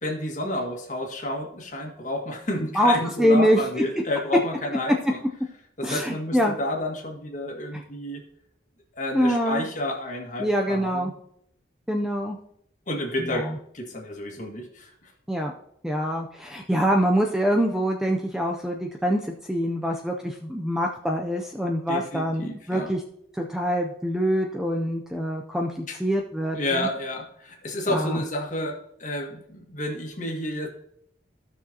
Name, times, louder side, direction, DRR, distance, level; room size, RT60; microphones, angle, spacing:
voice 1, 0.0-5.2 5.8-8.2 8.9-11.1 12.9-13.5 13.7-15.1 21.9-22.9 25.9-26.0 26.5-30.7, left 1 dB, 40° left, 0 dB, 1.8 m, -30 dB
voice 2, 2.7-3.6 5.8-6.5 9.1-9.7 10.4-11.1 11.9-12.4 13.2-13.6 15.3-15.5 15.8-23.0 23.3-26.9 27.9-28.2, equal, 5° right, 1 dB, 0.5 m, -25 dB
15.0 x 6.2 x 2.9 m, 0.71 s
head